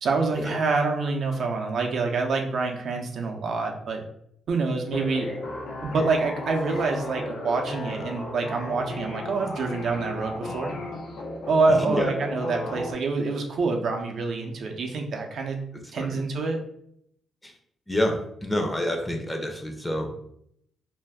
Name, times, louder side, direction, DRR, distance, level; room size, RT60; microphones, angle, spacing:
voice 1, 0.0-4.0 4.5-5.3 5.8-10.7 11.5-15.6 15.9-16.6, right 3 dB, 65° right, 2 dB, 0.5 m, -26 dB
sound 1, 4.9-12.9, left 2 dB, 70° left, 0.6 m, -35 dB
voice 2, 11.7-12.1 16.0-16.2 17.4-17.5 17.9-20.1, left 1 dB, 15° left, 3 dB, 0.6 m, -28 dB
2.5 x 2.2 x 3.4 m, 0.71 s
cardioid pair, 80°, 0 cm